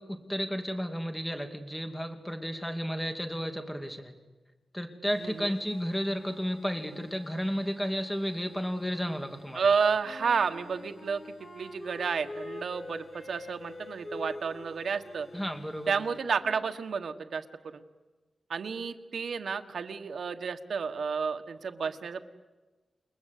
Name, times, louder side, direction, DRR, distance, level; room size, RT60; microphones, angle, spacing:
voice 1, 0.0-4.1 4.7-9.6 15.3-15.9, equal, 5° left, 6 dB, 2.7 m, -33 dB
sound 1, 5.1-16.5, left 2 dB, 75° left, 7.7 m, -60 dB
voice 2, 5.2-5.6 9.5-11.2 11.5-15.3 15.9-17.4 17.7-17.8 18.5-22.2, right 5 dB, 75° right, 7 dB, 1.5 m, -31 dB
Wind instrument woodwind instrument, 10.0-16.8, left 2 dB, 40° left, 3.2 m, -45 dB
29.5 x 20.5 x 8.5 m, 1.2 s
wide cardioid pair, 155°, 0 cm